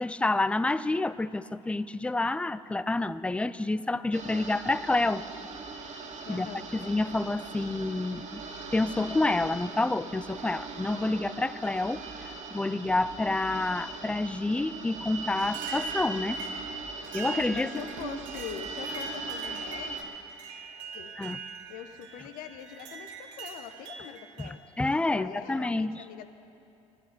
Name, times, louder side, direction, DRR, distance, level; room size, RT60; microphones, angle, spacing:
voice 1, 0.0-5.2 6.3-6.5 6.7-8.4 8.7-12.0 12.5-16.4 17.1-17.7 21.2-21.4 24.4-26.0, left 2 dB, 5° left, 16 dB, 0.4 m, -28 dB
sound 1, 4.1-20.0, right 3 dB, 50° right, 2.1 m, -39 dB
sound 2, 5.6-6.4 7.5-7.6 8.7-9.0 9.6-9.7 10.4-10.5 11.6-12.3 12.8-13.6 14.7-14.8 15.4-24.5, right 6 dB, 75° right, 1.3 m, -44 dB
voice 2, 6.2-6.7 16.9-20.0 20.9-21.2 21.7-24.6 25.1-26.3, left 8 dB, 65° left, 8 dB, 1.0 m, -42 dB
16.5 x 11.5 x 6.0 m, 2.7 s
hypercardioid pair, 55°, 16 cm